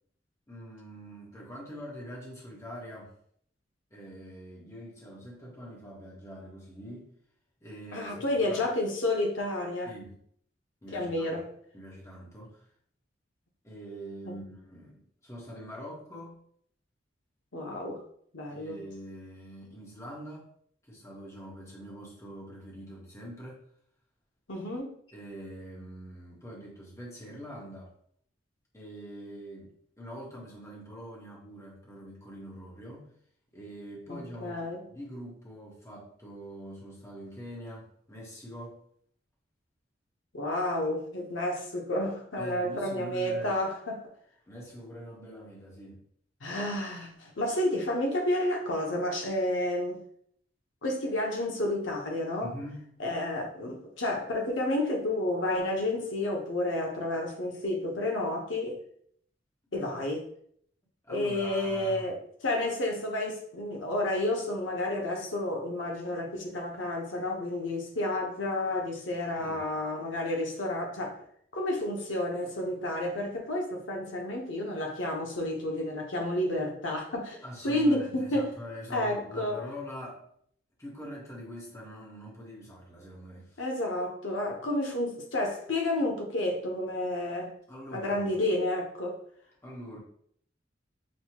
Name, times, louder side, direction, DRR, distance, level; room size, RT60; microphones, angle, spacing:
voice 1, 0.5-3.1 3.9-7.1 7.6-8.6 9.8-10.2 10.8-11.3 11.7-12.6 13.6-16.4 18.5-20.5 20.8-23.6 25.1-27.9 28.7-33.1 33.5-38.8 42.4-43.6 44.5-46.0 52.4-53.0 61.0-62.1 69.4-69.6 77.4-80.2 80.8-83.6 87.7-88.3 89.6-90.0, equal, 15° left, -4 dB, 1.1 m, -44 dB
voice 2, 7.9-9.9 10.9-11.5 14.3-14.4 17.5-18.0 18.3-18.8 24.5-25.0 34.1-34.8 40.3-44.0 46.4-50.0 50.8-52.5 53.0-58.8 59.7-60.3 61.1-71.2 71.5-78.5 78.9-79.6 83.6-87.5 87.9-89.2, left 1 dB, 85° left, 0 dB, 0.9 m, -30 dB
6.3 x 2.3 x 2.9 m, 0.64 s
head